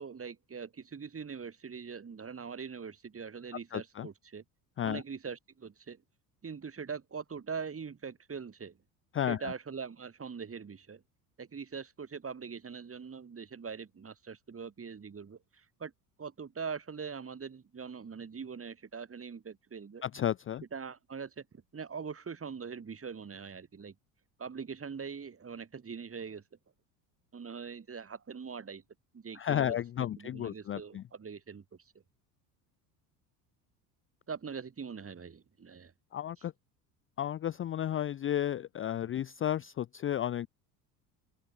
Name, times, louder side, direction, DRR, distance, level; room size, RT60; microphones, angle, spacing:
voice 1, 0.0-4.4 4.8-6.0 6.4-8.8 9.3-11.0 11.4-15.9 16.2-20.0 20.7-21.5 21.7-23.9 24.4-26.4 27.3-28.8 29.1-29.8 30.2-31.6 34.3-35.9, right 6 dB, 25° right, 5.9 m, -42 dB
voice 2, 3.7-4.1 4.8-5.0 9.1-9.5 20.0-20.6 29.3-31.0 36.1-36.5 37.2-40.5, left 11 dB, 25° left, 0.6 m, -33 dB
open air
hypercardioid pair, 80°, 48 cm